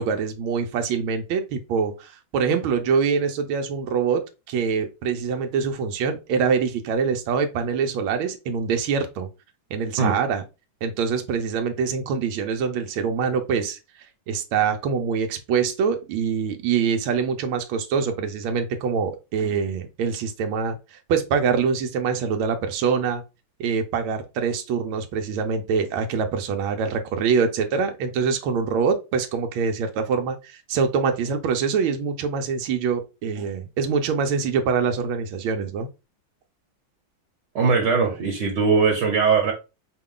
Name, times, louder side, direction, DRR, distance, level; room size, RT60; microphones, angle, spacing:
voice 1, 0.0-4.2 4.5-9.3 9.7-10.4 10.8-13.8 14.3-23.2 23.6-35.9, right 6 dB, 85° right, 1.5 m, -24 dB
voice 2, 37.5-39.5, right 5 dB, 65° right, 1.4 m, -20 dB
5.1 x 2.3 x 3.6 m
omnidirectional pair, 2.2 m